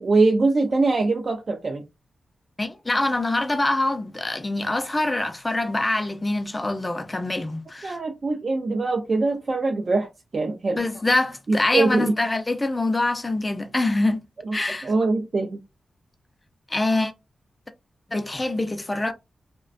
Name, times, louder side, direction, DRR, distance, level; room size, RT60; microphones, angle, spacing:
voice 1, 0.0-1.8 7.8-10.8 11.5-12.1 14.5-14.6 14.8-15.6, right 3 dB, 50° right, 0.4 m, -23 dB
voice 2, 2.6-8.0 10.8-14.2 14.5-14.9 16.7-17.1 18.1-19.1, left 2 dB, 25° left, 0.4 m, -24 dB
2.4 x 2.1 x 2.4 m
cardioid pair, 80°, 0 cm